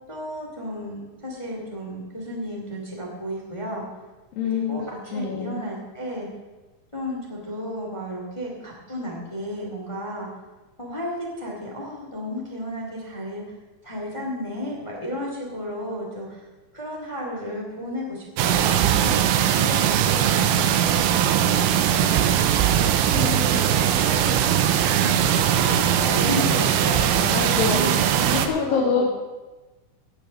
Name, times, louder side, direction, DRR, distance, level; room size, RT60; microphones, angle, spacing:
voice 1, 0.1-3.8 4.5-6.3 6.9-10.3 10.8-13.4 13.8-16.4 16.7-19.2 19.6-20.6 21.0-21.3 21.7-25.2 25.6-29.0, equal, 25° left, -1 dB, 0.7 m, -33 dB
voice 2, 4.4-5.6 23.1-23.8 27.3-27.9 28.3-29.0, left 6 dB, 60° left, -1 dB, 3.0 m, -26 dB
sound 1, 18.4-28.5, right 10 dB, 85° right, 3.0 m, -20 dB
17.0 x 6.9 x 6.4 m, 1.2 s
omnidirectional pair, 5.3 m